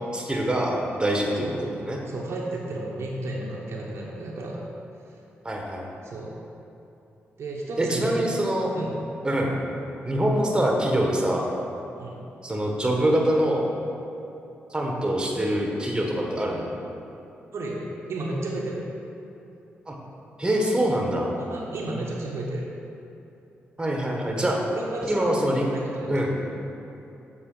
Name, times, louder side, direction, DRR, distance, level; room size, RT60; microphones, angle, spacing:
voice 1, 0.1-2.0 5.4-5.9 7.8-8.7 9.2-9.6 10.0-11.5 12.4-13.7 14.7-16.7 19.9-20.0 20.4-21.3 23.8-24.6 25.1-25.7 26.1-26.4, right 1 dB, 20° right, 0 dB, 1.1 m, -24 dB
voice 2, 2.1-4.6 6.0-6.3 7.4-8.2 8.7-9.0 12.0-12.2 17.5-18.8 21.4-22.6 24.7-25.3 25.6-26.3, right 2 dB, 65° right, -3 dB, 0.9 m, -33 dB
7.3 x 3.9 x 3.8 m, 2.8 s
supercardioid pair, 50°, 5 cm